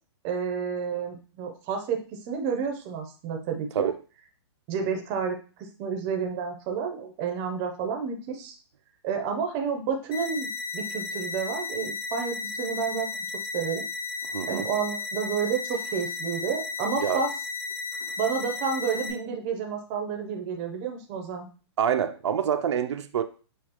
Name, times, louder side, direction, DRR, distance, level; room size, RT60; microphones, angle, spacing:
voice 1, 0.2-2.0 2.2-3.9 4.7-8.5 9.0-10.5 10.7-13.3 13.5-13.8 14.5-17.3 18.2-21.5, right 6 dB, 20° right, 0.5 m, -30 dB
sound 1, 10.1-19.1, left 4 dB, 50° left, 1.7 m, -34 dB
voice 2, 14.3-14.7 17.0-17.3 21.8-23.2, right 8 dB, 80° right, 0.5 m, -26 dB
6.6 x 2.3 x 2.9 m
hypercardioid pair, 170°, 14 cm